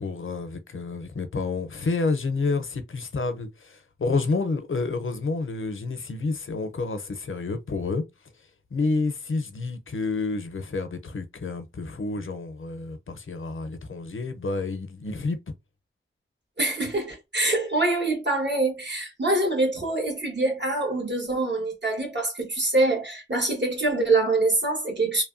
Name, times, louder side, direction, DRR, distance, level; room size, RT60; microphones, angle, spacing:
voice 1, 0.0-8.0 8.7-15.4, left 3 dB, 70° left, 0.6 m, -29 dB
voice 2, 16.6-25.2, right 2 dB, 55° right, 1.4 m, -25 dB
3.0 x 2.2 x 2.5 m
wide cardioid pair, 40°, 21 cm